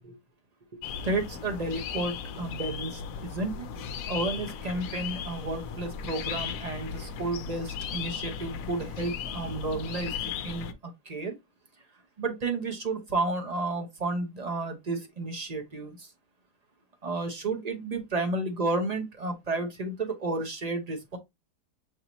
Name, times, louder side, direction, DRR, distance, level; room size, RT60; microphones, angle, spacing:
voice 1, 0.7-3.7 4.1-11.4 12.2-16.1 17.0-21.2, right 2 dB, 35° right, 0.7 m, -32 dB
sound 1, 0.8-10.7, left 7 dB, 70° left, 0.9 m, -36 dB
6.4 x 2.7 x 3.0 m
omnidirectional pair, 1.7 m